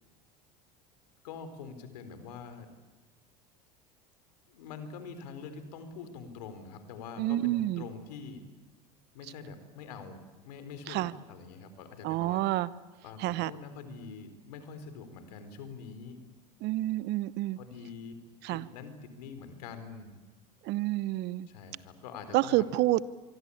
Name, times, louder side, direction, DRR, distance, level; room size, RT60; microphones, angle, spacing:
voice 1, 1.2-2.7 4.5-8.4 9.1-12.4 13.0-16.2 17.6-18.2 18.5-20.2 21.5-22.6, left 5 dB, 75° left, 10 dB, 4.1 m, -45 dB
voice 2, 7.2-7.8 10.9-11.1 12.0-12.7 13.2-13.5 16.6-17.6 18.4-18.7 20.6-21.5 22.3-23.0, right 17 dB, 55° right, 18 dB, 1.0 m, -28 dB
25.0 x 23.5 x 8.6 m, 1.3 s
hypercardioid pair, 80°, 20 cm